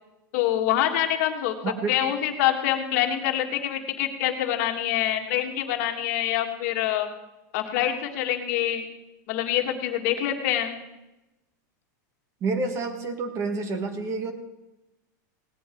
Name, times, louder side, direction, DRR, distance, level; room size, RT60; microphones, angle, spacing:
voice 1, 0.3-1.5 1.9-7.1 7.5-8.9 9.3-10.7, left 11 dB, 55° left, 4 dB, 1.8 m, -25 dB
voice 2, 1.6-2.0 12.4-14.3, right 3 dB, 30° right, 8 dB, 1.5 m, -28 dB
17.5 x 10.5 x 4.5 m, 0.98 s
supercardioid pair, 155°, 10 cm